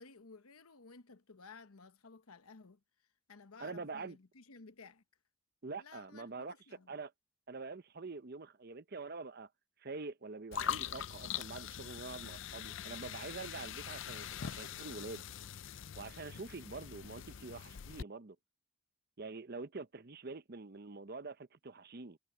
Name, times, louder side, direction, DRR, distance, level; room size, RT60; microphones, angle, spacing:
voice 1, 0.0-5.0 5.8-6.9, left 4 dB, 90° left, 1.1 m, -56 dB
voice 2, 3.6-4.2 5.6-6.5 6.9-7.1 7.5-9.5 9.8-15.2 15.9-18.4 19.2-22.2, right 3 dB, 45° right, 0.7 m, -45 dB
sound 1, 10.5-18.0, left 9 dB, 60° left, 0.5 m, -43 dB
head